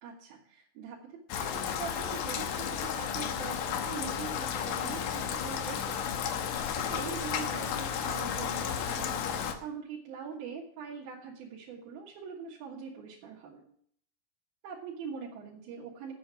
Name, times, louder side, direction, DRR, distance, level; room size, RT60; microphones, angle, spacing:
voice 1, 0.0-13.6 14.6-16.1, right 6 dB, 90° right, -4 dB, 3.4 m, -43 dB
Rain, 1.3-9.5, left 8 dB, 75° left, 2.6 m, -33 dB
8.0 x 7.9 x 8.9 m, 0.63 s
omnidirectional pair, 4.2 m